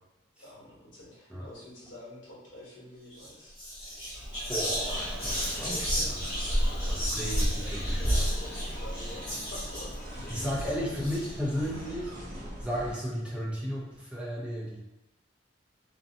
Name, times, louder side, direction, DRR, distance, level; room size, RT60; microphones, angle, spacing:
voice 1, 0.4-3.5 6.8-9.9 10.2-10.9, left 1 dB, 75° left, -7 dB, 1.0 m, -48 dB
Whispering, 3.1-3.3 3.6-11.7, equal, 25° left, 1.3 m, -31 dB
voice 2, 4.5-6.2 6.9-8.2 10.3-12.2 12.6-14.8, equal, 5° right, -6 dB, 0.5 m, -34 dB
sound 1, 4.8-12.9, equal, 50° right, 0.7 m, -42 dB
2.5 x 2.2 x 2.6 m, 0.97 s
head